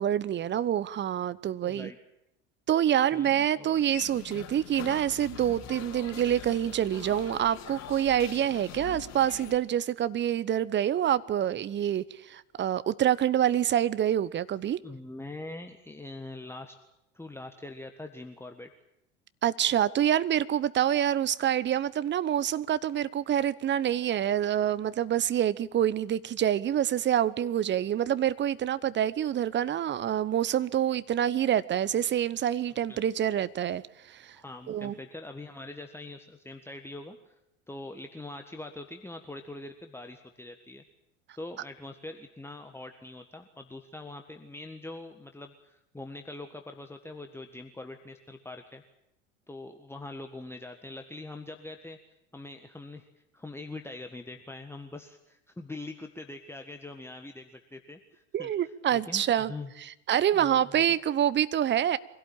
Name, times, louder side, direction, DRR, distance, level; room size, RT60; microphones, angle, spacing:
voice 1, 0.0-1.9 2.7-14.8 19.4-33.8 34.1-34.4 34.7-34.9 58.3-59.5 60.1-62.0, right 10 dB, 30° right, 0.9 m, -26 dB
voice 2, 1.6-2.0 3.1-3.7 14.8-16.8 17.1-18.7 32.9-33.0 34.3-37.3 37.7-40.8 41.4-48.8 49.5-52.0 52.3-53.1 53.3-59.7 60.3-60.8, left 2 dB, 5° left, 1.6 m, -43 dB
sound 1, 3.7-9.6, left 10 dB, 45° left, 4.2 m, -43 dB
24.0 x 17.0 x 8.9 m
figure-of-eight pair, 75°, 37 cm